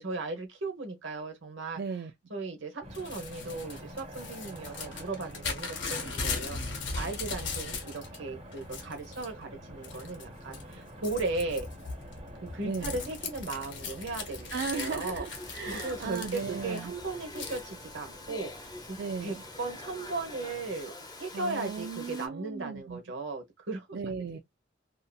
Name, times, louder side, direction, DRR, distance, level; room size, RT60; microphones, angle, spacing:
voice 1, 0.0-1.8 2.3-11.7 12.4-15.3 15.6-20.9 21.2-24.0, right 3 dB, 75° right, 1.0 m, -37 dB
voice 2, 1.8-2.1 12.6-12.9 14.5-16.9 19.0-19.4 21.3-23.0 23.9-24.4, right 5 dB, 55° right, 0.3 m, -36 dB
sound 1, 2.8-20.8, equal, 30° right, 1.2 m, -48 dB
Crumpling crinkling / Tearing, 2.9-8.2 8.5-9.3 9.8-10.2 10.5-16.8 17.4-17.6, left 4 dB, 70° left, 1.0 m, -38 dB
Domestic sounds home sounds, 15.3-22.3, left 2 dB, 20° left, 0.7 m, -45 dB
2.7 x 2.6 x 2.3 m
head